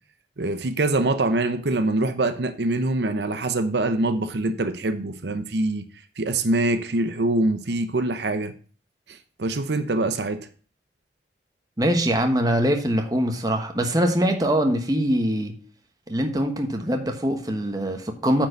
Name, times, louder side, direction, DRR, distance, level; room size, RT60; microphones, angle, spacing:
voice 1, 0.4-5.8 6.2-8.5 9.1-10.5, right 2 dB, 75° right, 0.8 m, -24 dB
voice 2, 11.8-15.6 16.1-18.5, equal, 20° right, 1.1 m, -23 dB
9.3 x 4.7 x 6.5 m
head